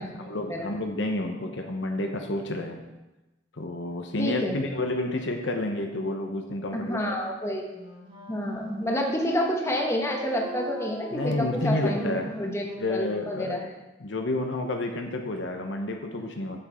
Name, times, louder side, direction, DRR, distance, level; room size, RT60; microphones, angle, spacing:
voice 1, 0.0-2.8 3.6-7.1 11.1-12.3 12.8-13.6 14.0-16.6, left 2 dB, 65° left, 4 dB, 0.9 m, -30 dB
voice 2, 4.2-4.6 6.7-7.6 8.3-13.7, equal, 15° left, 0 dB, 1.1 m, -29 dB
Wind instrument woodwind instrument, 7.7-13.6, equal, 25° right, 1.6 m, -41 dB
8.6 x 7.4 x 4.4 m, 1.1 s
head